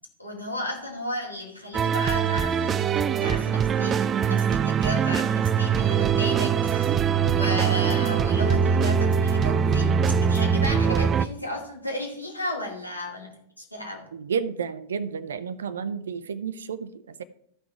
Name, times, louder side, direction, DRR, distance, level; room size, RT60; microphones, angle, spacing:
voice 1, 0.2-2.9 3.2-14.1, left 1 dB, 90° left, -1 dB, 2.4 m, -34 dB
sound 1, 1.7-11.3, right 7 dB, 25° right, 0.4 m, -22 dB
voice 2, 14.1-17.2, right 6 dB, 65° right, 14 dB, 0.6 m, -31 dB
13.0 x 5.7 x 4.6 m, 0.69 s
figure-of-eight pair, 90°, 0 cm